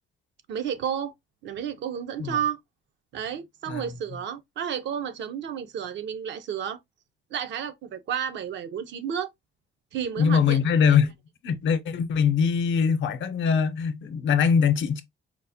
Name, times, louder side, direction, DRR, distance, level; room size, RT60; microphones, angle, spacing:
voice 1, 0.5-1.1 1.4-2.6 3.1-6.8 7.3-9.3 9.9-10.6 10.9-11.0, right 8 dB, 65° right, 0.6 m, -31 dB
voice 2, 10.2-11.1 11.4-15.0, left 6 dB, 70° left, 0.6 m, -22 dB
4.5 x 2.1 x 2.6 m
cardioid pair, 90°, 20 cm